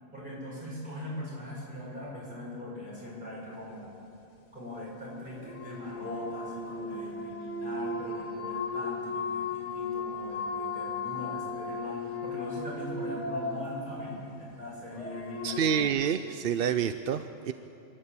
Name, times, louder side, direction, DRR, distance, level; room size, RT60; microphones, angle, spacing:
voice 1, 0.1-3.9 4.5-16.0, left 1 dB, 40° right, -6 dB, 7.3 m, -40 dB
sound 1, 5.3-15.8, left 3 dB, 65° left, 2.1 m, -36 dB
voice 2, 15.4-17.5, right 8 dB, 60° right, 10 dB, 0.7 m, -28 dB
26.0 x 12.0 x 8.4 m, 2.7 s
omnidirectional pair, 1.3 m